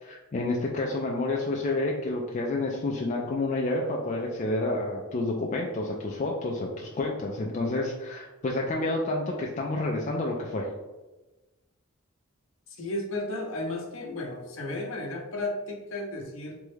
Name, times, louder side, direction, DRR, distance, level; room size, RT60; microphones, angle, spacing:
voice 1, 0.0-10.7, left 2 dB, 35° left, -1 dB, 0.3 m, -29 dB
voice 2, 12.7-16.6, left 2 dB, 65° left, 1 dB, 0.7 m, -34 dB
3.5 x 2.1 x 3.1 m, 1.1 s
head